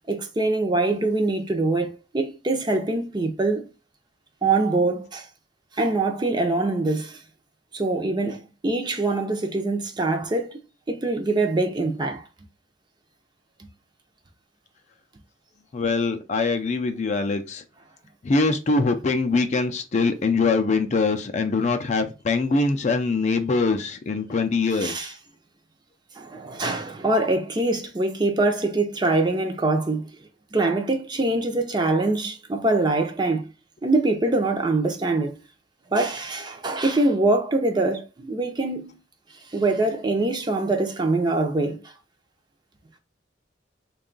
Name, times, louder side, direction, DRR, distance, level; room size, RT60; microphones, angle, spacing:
voice 1, 0.1-3.7 4.4-5.3 5.8-7.2 7.7-10.6 10.9-12.2 24.8-25.1 26.2-30.1 30.5-33.4 33.8-35.4 35.9-39.0 39.5-41.8, right 2 dB, 25° right, 0.5 m, -24 dB
voice 2, 15.7-17.6 18.2-25.1, left 3 dB, 40° left, 0.4 m, -23 dB
3.6 x 2.3 x 3.8 m
head